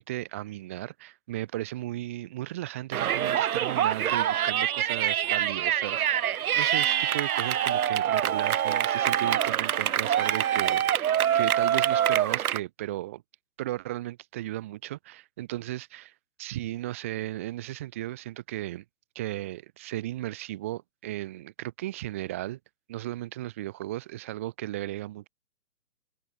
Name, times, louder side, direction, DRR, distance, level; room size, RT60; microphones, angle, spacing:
voice 1, 0.0-13.2 13.6-18.8 19.1-22.6 22.9-25.3, right 15 dB, 10° right, 0.6 m, -35 dB
Yell, 2.9-12.6, right 10 dB, 75° right, 0.5 m, -25 dB
sound 1, 6.8-8.0 8.2-9.4 9.7-10.9 11.2-12.4, left 7 dB, 60° left, 1.9 m, -48 dB
figure-of-eight pair, 135°, 44 cm